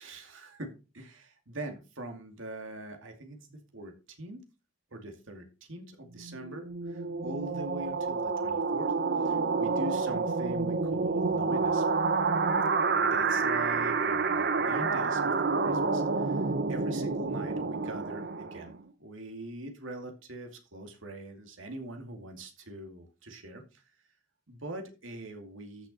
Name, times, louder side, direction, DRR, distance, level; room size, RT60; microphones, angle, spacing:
voice 1, 0.0-4.4 4.9-8.9 9.2-11.8 13.0-18.7 19.0-23.8 24.5-25.9, right 1 dB, 75° right, 4 dB, 2.4 m, -43 dB
sound 1, 6.2-18.8, right 4 dB, 55° right, 0.9 m, -29 dB
13.5 x 6.2 x 4.1 m, 0.31 s
head